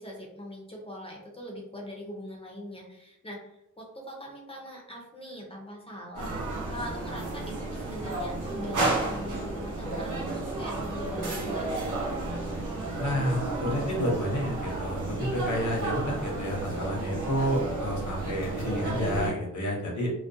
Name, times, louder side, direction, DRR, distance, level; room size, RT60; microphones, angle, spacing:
voice 1, 0.0-6.3 6.7-12.1, equal, 20° left, -3 dB, 0.5 m, -41 dB
sound 1, 6.1-19.3, right 2 dB, 85° right, 0.7 m, -32 dB
voice 2, 13.0-20.1, equal, 70° left, -1 dB, 0.8 m, -30 dB
2.4 x 2.1 x 2.6 m, 0.82 s
wide cardioid pair, 130°, 30 cm